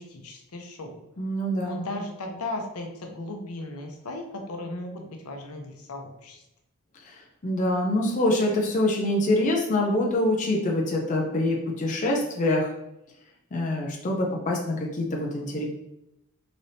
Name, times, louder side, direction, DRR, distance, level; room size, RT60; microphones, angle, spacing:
voice 1, 0.0-1.0 1.6-6.4, left 2 dB, 75° left, 2 dB, 0.7 m, -36 dB
voice 2, 1.2-2.0 7.1-7.2 7.4-12.7 13.5-15.6, left 1 dB, 35° left, -1 dB, 0.5 m, -25 dB
3.9 x 3.3 x 2.7 m, 0.88 s
head